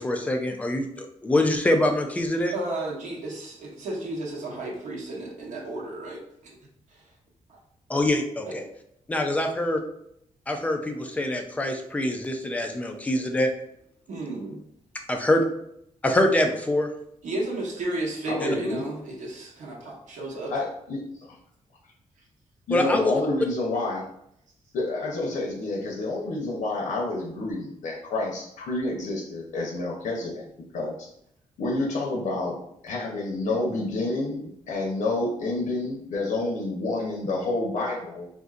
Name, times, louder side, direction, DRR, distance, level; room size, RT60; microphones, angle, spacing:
voice 1, 0.0-2.5 7.9-8.6 9.1-9.8 10.5-13.5 15.1-15.4 16.0-16.9 18.4-18.5 22.7-23.1, left 1 dB, 10° left, 3 dB, 0.3 m, -24 dB
voice 2, 2.5-6.6 6.9-7.1 7.5-7.6 8.4-8.5 14.1-14.6 17.2-20.5, right 2 dB, 70° right, -3 dB, 1.0 m, -33 dB
voice 3, 18.3-18.9 20.5-21.0 22.7-24.1 24.7-30.4 30.7-31.1 31.6-32.6 32.8-38.3, left 2 dB, 90° left, -1 dB, 0.6 m, -29 dB
3.7 x 2.5 x 2.4 m, 0.74 s
wide cardioid pair, 175°, 13 cm